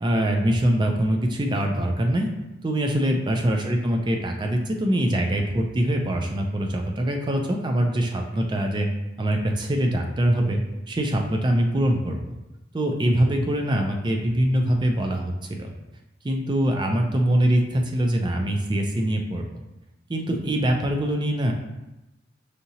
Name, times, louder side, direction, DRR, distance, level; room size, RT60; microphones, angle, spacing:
voice 1, 0.0-2.3 2.6-8.9 9.2-10.6 10.9-12.2 12.7-15.7 16.2-19.5 20.1-21.5, right 1 dB, 25° right, 2 dB, 0.4 m, -23 dB
5.0 x 2.8 x 2.8 m, 0.97 s
head